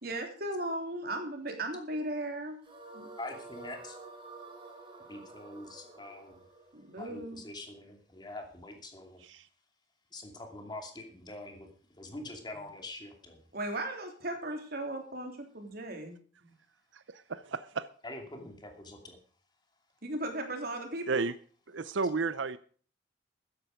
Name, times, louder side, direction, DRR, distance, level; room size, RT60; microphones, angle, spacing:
voice 1, 0.0-2.6 2.9-3.1 6.7-7.4 13.5-16.2 20.0-21.2, right 1 dB, 55° right, 3 dB, 3.3 m, -36 dB
sound 1, 2.6-7.8, right 3 dB, 30° right, 3.1 m, -50 dB
voice 2, 3.2-4.0 5.1-6.4 7.0-9.2 10.1-11.7 12.0-13.5 18.0-19.2, left 2 dB, 25° left, 3 dB, 2.7 m, -44 dB
voice 3, 16.9-17.9 21.1-21.3 21.7-22.6, right 4 dB, 80° right, 15 dB, 0.7 m, -33 dB
14.0 x 10.0 x 5.1 m, 0.43 s
head